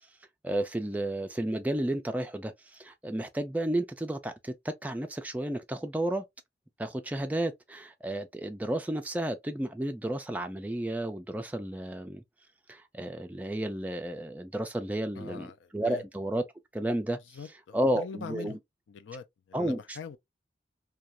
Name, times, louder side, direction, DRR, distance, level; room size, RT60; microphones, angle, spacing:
voice 1, 0.4-6.2 6.8-12.2 12.7-16.4 16.7-17.2 17.7-18.6 19.5-20.0, right 1 dB, 10° right, 0.3 m, -32 dB
voice 2, 15.2-16.0 17.3-18.6 18.9-20.2, left 5 dB, 85° left, 0.4 m, -43 dB
2.4 x 2.2 x 2.8 m
head